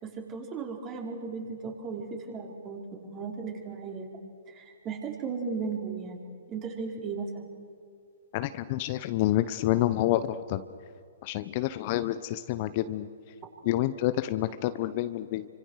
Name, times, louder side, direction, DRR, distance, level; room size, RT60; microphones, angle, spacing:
voice 1, 0.0-4.1 4.5-7.4, right 5 dB, 25° right, 1 dB, 5.0 m, -36 dB
voice 2, 8.3-10.6 11.2-13.1 13.6-15.5, left 14 dB, 40° left, 13 dB, 0.9 m, -28 dB
29.0 x 25.5 x 6.5 m, 2.3 s
hypercardioid pair, 125°, 0 cm